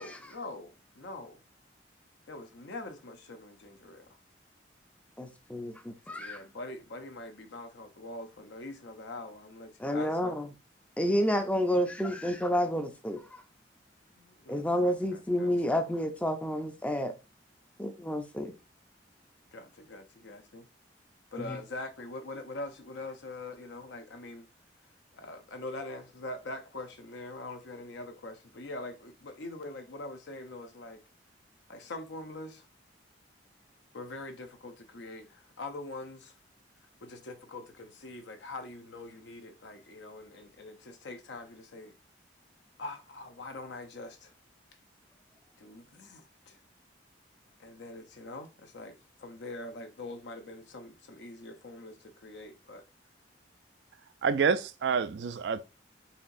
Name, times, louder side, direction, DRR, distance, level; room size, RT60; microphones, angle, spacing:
voice 1, 0.0-1.4 2.3-4.2 6.1-10.3 14.2-15.7 19.5-20.7 21.3-24.5 25.1-31.0 31.7-32.7 33.9-36.4 37.0-41.9 42.8-44.3 45.6-46.6 47.6-52.9, left 2 dB, 70° left, 0.7 m, -43 dB
voice 2, 5.2-6.4 9.8-10.5 11.0-13.4 14.5-17.1 17.8-18.5 21.4-21.6, equal, 5° left, 0.5 m, -30 dB
voice 3, 54.2-55.6, right 6 dB, 65° right, 0.4 m, -27 dB
4.2 x 3.9 x 2.5 m
head